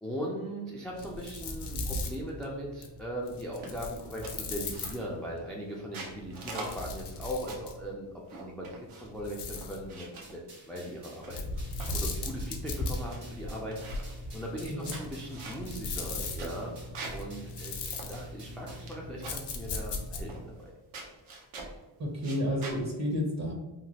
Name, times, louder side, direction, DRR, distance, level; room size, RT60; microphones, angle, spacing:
voice 1, 0.0-11.4 11.9-16.8 17.1-20.7, equal, ahead, -3 dB, 0.3 m, -39 dB
sound 1, 0.9-5.4 6.2-7.9 9.0-9.9 11.3-20.5, left 2 dB, 55° left, 0.6 m, -38 dB
sound 2, 3.6-3.9 4.2-5.2 5.7-7.8 8.3-9.2 9.6-10.3 11.0-12.0 12.5-12.6 12.8-13.2 13.5-14.2 14.7-17.3 17.6-17.7 17.9-19.0 19.2-19.5 20.3-20.7 20.9-21.8 22.2-22.8, right 3 dB, 80° right, 0.8 m, -43 dB
sound 3, 10.2-18.9, right 2 dB, 60° right, 1.4 m, -53 dB
voice 2, 22.0-23.5, equal, 35° right, 1 dB, 0.7 m, -31 dB
3.0 x 2.2 x 2.7 m, 1.1 s
cardioid pair, 105°, 48 cm